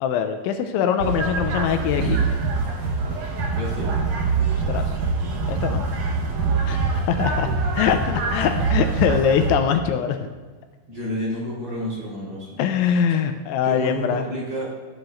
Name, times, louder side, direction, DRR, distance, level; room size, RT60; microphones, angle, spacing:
voice 1, 0.0-2.2 4.7-5.0 5.5-5.9 6.7-7.5 7.8-10.3 12.6-14.2, left 8 dB, 85° left, 6 dB, 2.9 m, -23 dB
sound 1, 1.0-9.6, right 4 dB, 75° right, 1.8 m, -24 dB
voice 2, 1.9-2.3 3.5-4.0 10.9-12.6 13.6-14.7, equal, 30° right, -7 dB, 4.4 m, -30 dB
15.5 x 9.7 x 2.6 m, 1.4 s
omnidirectional pair, 5.4 m